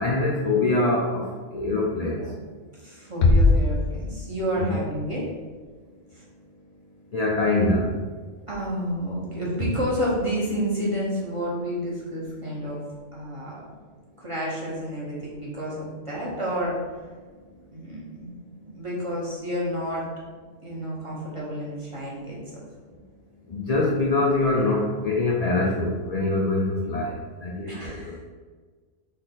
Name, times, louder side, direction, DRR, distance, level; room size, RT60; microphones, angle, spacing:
voice 1, 0.0-2.3 4.5-4.8 7.1-7.9 23.5-27.1 27.4-28.2, left 2 dB, 45° left, -3 dB, 0.5 m, -24 dB
voice 2, 2.7-5.3 6.1-6.2 8.5-12.8 13.1-13.6 14.2-16.8 17.7-20.1 20.6-22.6 27.6-28.2, equal, 25° right, -6 dB, 1.2 m, -30 dB
sound 1, 3.2-4.8, left 2 dB, 80° left, 1.0 m, -20 dB
4.2 x 3.1 x 3.9 m, 1.4 s
omnidirectional pair, 1.3 m